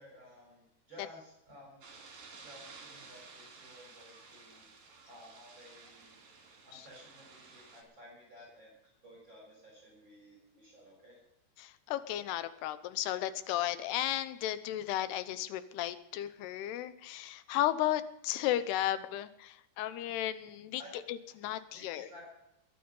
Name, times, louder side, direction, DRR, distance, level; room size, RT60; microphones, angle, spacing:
voice 1, 0.0-1.8 2.4-4.7 5.1-6.2 6.6-8.7 9.0-11.2 20.8-20.9 21.7-22.3, equal, 30° right, -3 dB, 6.9 m, -55 dB
sound 1, 1.8-7.8, right 4 dB, 65° right, 4.3 m, -54 dB
voice 2, 11.6-20.8 21.1-22.1, left 12 dB, 90° left, 13 dB, 2.9 m, -34 dB
22.0 x 9.1 x 5.4 m, 0.86 s
omnidirectional pair, 4.6 m